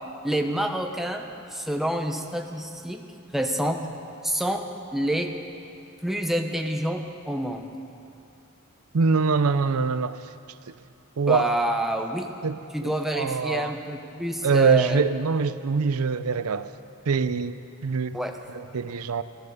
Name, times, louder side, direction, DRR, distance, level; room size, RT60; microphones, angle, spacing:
voice 1, 0.2-3.0 3.3-3.8 4.2-4.6 4.9-5.3 6.0-7.7 11.3-12.3 12.7-15.0 18.1-18.3, right 1 dB, ahead, 3 dB, 0.9 m, -27 dB
voice 2, 8.9-10.2 11.2-11.5 12.4-13.8 14.4-16.7 17.1-18.2 18.5-19.2, right 5 dB, 85° right, 13 dB, 0.6 m, -24 dB
14.0 x 14.0 x 6.7 m, 2.7 s
head